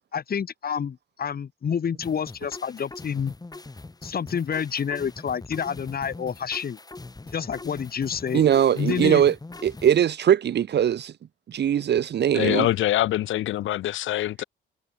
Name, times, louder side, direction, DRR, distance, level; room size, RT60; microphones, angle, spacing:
voice 1, 0.1-3.3 4.0-6.8 7.3-8.5 8.8-9.2, left 7 dB, 50° left, 6.4 m, -28 dB
sound 1, 2.0-10.0, left 2 dB, 20° left, 7.4 m, -42 dB
voice 2, 8.3-9.3 9.6-11.1 11.5-12.7, right 9 dB, 60° right, 1.6 m, -21 dB
voice 3, 12.3-14.4, left 14 dB, 80° left, 1.6 m, -24 dB
cardioid pair, 90°, 20 cm